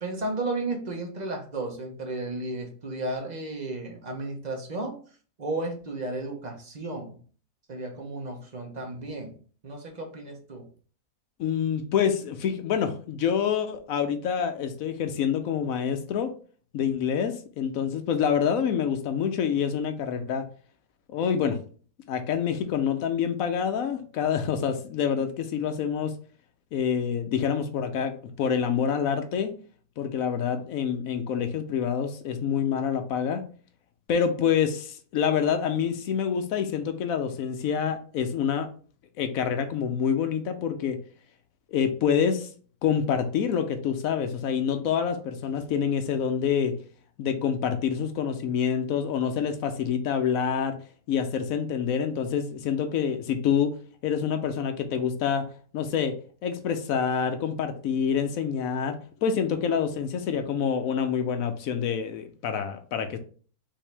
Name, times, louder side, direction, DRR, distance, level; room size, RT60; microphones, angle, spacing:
voice 1, 0.0-4.9 5.4-7.2 7.7-9.4 9.6-10.7, right 2 dB, 35° right, 2 dB, 0.9 m, -33 dB
voice 2, 11.4-16.3 16.7-20.4 21.1-21.6 22.1-26.1 26.7-29.5 30.0-33.4 34.1-38.7 39.2-41.0 41.7-42.5 42.8-46.8 47.2-50.8 51.1-53.7 54.0-55.5 55.7-56.2 56.4-63.2, left 7 dB, 70° left, 8 dB, 1.0 m, -27 dB
5.3 x 2.7 x 3.3 m, 0.42 s
omnidirectional pair, 1.6 m